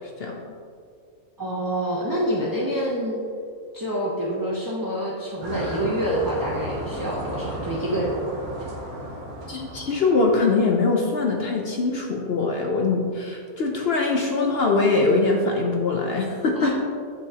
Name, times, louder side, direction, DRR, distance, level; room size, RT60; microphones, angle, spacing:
voice 1, 1.4-3.2 3.7-8.2 16.6-16.7, right 1 dB, 25° right, -6 dB, 0.5 m, -27 dB
sound 1, 5.4-10.7, right 1 dB, 90° right, 1.6 m, -34 dB
voice 2, 9.5-16.7, left 3 dB, 55° left, 1 dB, 0.7 m, -22 dB
8.1 x 6.7 x 2.8 m, 2.3 s
omnidirectional pair, 1.5 m